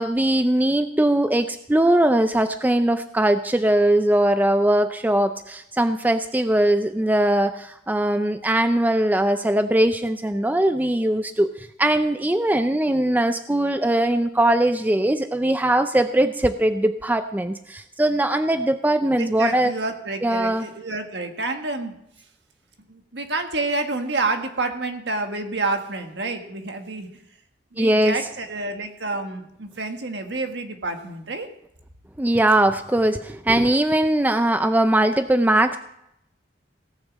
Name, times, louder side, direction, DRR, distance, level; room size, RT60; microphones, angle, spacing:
voice 1, 0.0-19.7 20.2-20.6 27.8-28.2 32.2-35.8, right 1 dB, 10° right, 9 dB, 0.4 m, -20 dB
voice 2, 19.2-22.0 22.9-27.1 27.7-31.5, right 3 dB, 65° right, 5 dB, 1.6 m, -28 dB
17.5 x 6.6 x 7.4 m, 0.78 s
head